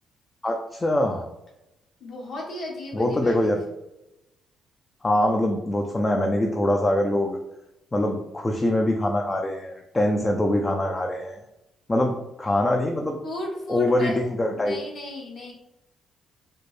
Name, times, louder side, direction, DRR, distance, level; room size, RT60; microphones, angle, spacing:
voice 1, 0.4-1.2 2.9-3.6 5.0-7.4 7.9-11.4 11.9-13.2 13.7-14.8, left 1 dB, 20° left, 1 dB, 0.4 m, -23 dB
voice 2, 2.0-3.5 13.2-15.5, left 1 dB, 60° left, -2 dB, 1.3 m, -35 dB
4.2 x 2.1 x 3.1 m, 0.91 s
cardioid pair, 90°, 0 cm